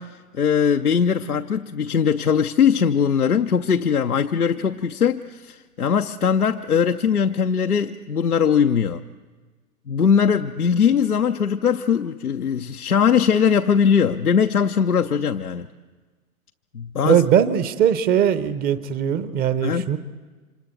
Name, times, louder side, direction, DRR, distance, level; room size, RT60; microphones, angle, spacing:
voice 1, 0.0-9.0 9.9-15.7 16.7-17.2 19.6-19.9, left 7 dB, 90° left, 0.6 m, -20 dB
voice 2, 17.0-20.0, right 9 dB, 20° right, 0.7 m, -20 dB
28.5 x 25.5 x 4.5 m
figure-of-eight pair, 105°, 43 cm